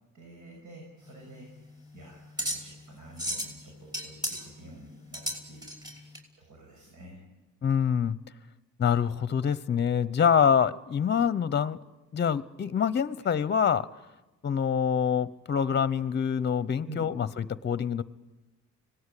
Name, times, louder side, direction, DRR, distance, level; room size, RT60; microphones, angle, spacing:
voice 1, 0.1-1.7 1.9-5.7 6.4-7.2 13.2-13.3 16.8-17.0, right 1 dB, 75° right, 0 dB, 6.8 m, -49 dB
sound 1, 1.0-6.2, equal, 15° right, 5.6 m, -36 dB
voice 2, 7.6-8.2 8.8-11.8 12.1-13.9 14.4-18.0, left 7 dB, 35° left, 16 dB, 0.8 m, -25 dB
25.5 x 18.5 x 8.4 m, 1.1 s
cardioid pair, 90°, 30 cm